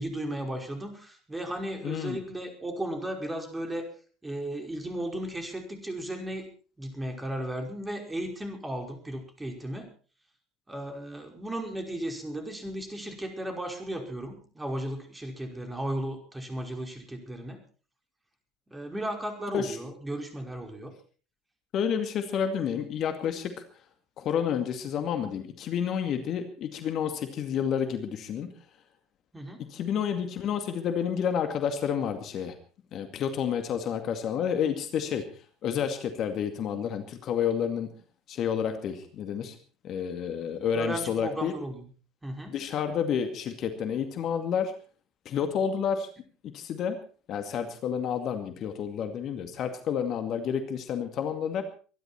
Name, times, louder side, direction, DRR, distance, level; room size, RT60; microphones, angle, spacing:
voice 1, 0.0-3.9 4.2-6.5 6.8-9.9 10.7-17.6 18.7-20.9 29.3-29.6 40.7-41.9 42.2-42.6, right 1 dB, 15° right, 4 dB, 5.2 m, -35 dB
voice 2, 1.8-2.2 19.5-19.8 21.7-23.6 24.2-28.5 29.7-32.5 32.9-35.3 35.6-37.9 38.3-39.6 39.8-41.5 42.5-44.7 45.3-46.1 46.4-47.0 47.3-51.6, left 8 dB, 50° left, 7 dB, 2.2 m, -30 dB
23.5 x 12.0 x 4.4 m, 0.39 s
hypercardioid pair, 70°, 0 cm